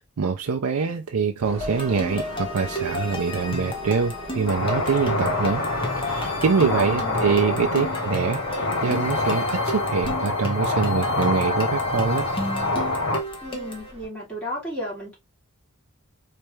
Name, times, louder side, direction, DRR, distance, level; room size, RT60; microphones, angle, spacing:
voice 1, 0.2-5.6 6.0-12.3, right 5 dB, 75° right, 0.5 m, -24 dB
Train, 1.4-14.1, right 2 dB, 25° right, 1.5 m, -41 dB
sound 1, 1.6-13.9, left 1 dB, 25° left, 1.1 m, -33 dB
sound 2, 4.5-13.2, left 2 dB, 60° left, 0.9 m, -26 dB
voice 2, 6.6-7.3 13.4-15.1, left 1 dB, 5° left, 3.0 m, -33 dB
4.4 x 3.3 x 3.2 m
head